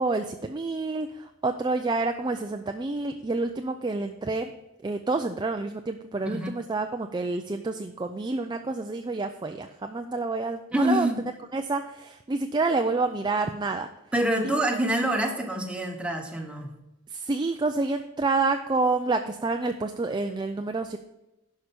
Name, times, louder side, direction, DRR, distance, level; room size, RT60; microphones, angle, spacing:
voice 1, 0.0-4.5 4.8-11.1 11.5-13.9 14.4-14.6 17.1-21.0, right 3 dB, 20° right, 6 dB, 0.4 m, -28 dB
voice 2, 10.7-11.2 14.1-16.7, right 1 dB, 5° right, 2 dB, 1.1 m, -26 dB
11.0 x 5.6 x 5.2 m, 0.94 s
head